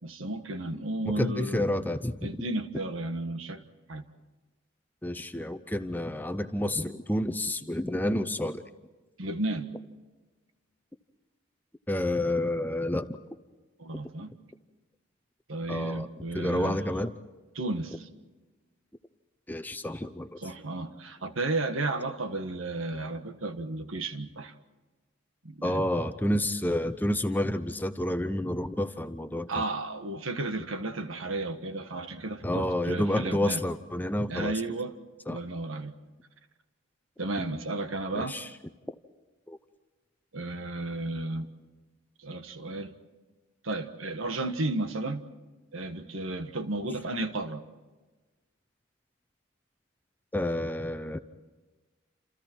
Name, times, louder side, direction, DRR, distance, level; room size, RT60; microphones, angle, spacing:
voice 1, 0.0-2.0 2.2-3.6 3.9-4.0 9.2-9.7 13.8-14.3 15.5-16.8 17.5-18.1 20.4-24.5 25.4-25.8 29.5-33.6 34.3-34.9 35.3-35.9 37.2-38.4 40.3-41.5 42.2-42.9 43.6-45.3 45.7-47.6, right 2 dB, 80° right, 8 dB, 1.6 m, -33 dB
voice 2, 1.0-2.3 5.0-8.6 11.9-13.1 15.7-16.1 16.3-17.1 19.5-20.3 25.6-29.6 32.4-34.5 35.3-35.4 38.1-38.5 39.5-39.6 50.3-51.2, left 1 dB, 10° left, 9 dB, 0.7 m, -29 dB
28.5 x 28.0 x 4.5 m, 1.3 s
head